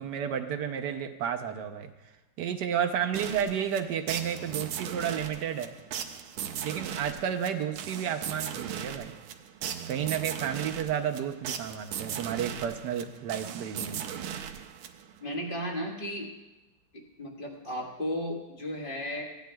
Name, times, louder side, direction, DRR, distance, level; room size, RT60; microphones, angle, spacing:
voice 1, 0.0-1.9 2.4-5.7 6.6-9.1 9.9-14.1, right 8 dB, 65° right, 5 dB, 1.2 m, -31 dB
sound 1, 3.1-15.3, right 9 dB, 80° right, 1.4 m, -38 dB
voice 2, 15.2-16.3 16.9-19.2, equal, 25° left, -1 dB, 1.6 m, -34 dB
16.5 x 10.5 x 2.3 m, 1.0 s
omnidirectional pair, 2.3 m